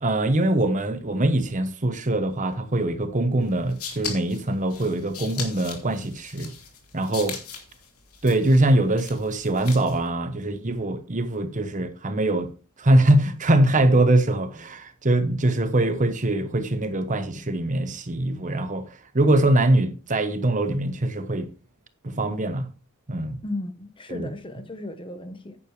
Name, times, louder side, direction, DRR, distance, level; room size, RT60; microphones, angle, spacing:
voice 1, 0.0-6.5 6.9-7.4 8.2-12.5 12.8-21.5 22.0-22.7 23.1-23.4 24.1-24.3, right 1 dB, 35° right, 1.0 m, -23 dB
sound 1, 3.5-10.1, left 6 dB, 80° left, 2.8 m, -39 dB
voice 2, 23.4-25.6, left 2 dB, 25° left, 1.0 m, -35 dB
10.0 x 10.0 x 3.2 m
head